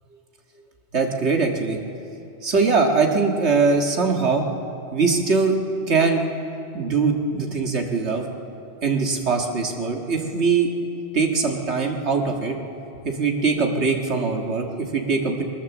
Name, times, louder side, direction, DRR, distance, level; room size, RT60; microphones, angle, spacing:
voice 1, 0.9-1.8 2.4-4.5 4.9-5.6 5.9-6.2 6.7-8.2 8.8-10.7 11.1-12.6 13.0-15.4, right 4 dB, 85° right, 2 dB, 2.0 m, -21 dB
20.5 x 20.0 x 7.2 m, 2.7 s
omnidirectional pair, 1.1 m